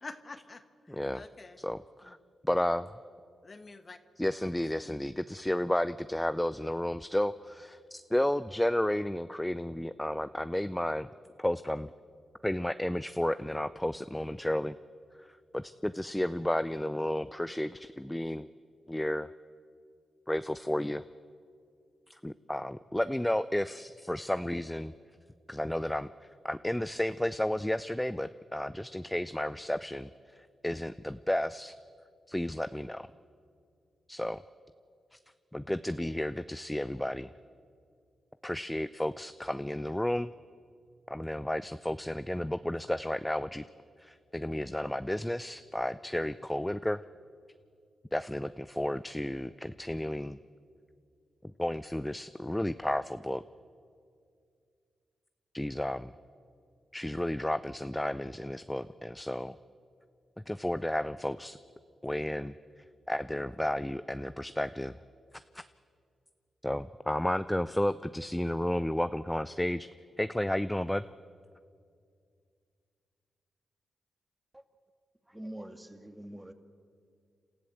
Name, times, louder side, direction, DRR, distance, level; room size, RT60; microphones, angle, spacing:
voice 1, 0.0-1.6 2.0-2.1 3.4-4.0 4.4-5.0, left 3 dB, 40° left, 10 dB, 1.2 m, -48 dB
voice 2, 0.9-1.2 1.6-2.2 2.4-2.9 4.2-11.1 11.4-11.9 12.4-14.8 15.2-18.5 18.9-19.3 20.3-21.0 22.1-24.9 25.5-31.7 32.3-33.1 34.1-34.4 35.1-35.2 35.5-37.3 38.4-40.3 41.1-43.6 44.0-47.0 48.1-50.4 51.4-53.4 55.5-56.1 56.9-59.6 60.5-61.6 62.0-62.5 63.1-65.0 65.5-65.6 66.6-69.9 70.2-71.1, left 1 dB, 10° left, 13 dB, 0.5 m, -32 dB
voice 3, 75.2-76.5, right 1 dB, 10° right, 7 dB, 2.0 m, -44 dB
28.0 x 13.5 x 7.7 m, 2.3 s
cardioid pair, 55°, 0 cm